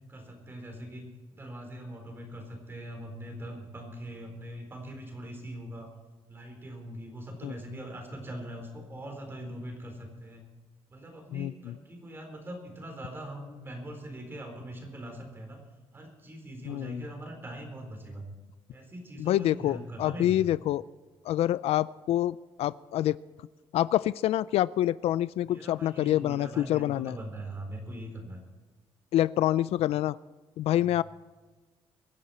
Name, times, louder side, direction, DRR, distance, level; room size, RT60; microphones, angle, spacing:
voice 1, 0.1-1.0 1.3-5.9 6.3-10.5 10.9-15.6 15.9-18.2 18.7-20.4 25.4-28.4 30.8-31.0, right 1 dB, 20° right, 3 dB, 4.1 m, -42 dB
voice 2, 11.3-11.7 16.7-17.0 19.2-20.8 21.3-23.2 23.7-27.2 29.1-30.2 30.6-31.0, left 13 dB, 75° left, 18 dB, 0.4 m, -27 dB
24.5 x 10.5 x 4.3 m, 1.3 s
cardioid pair, 160°, 10 cm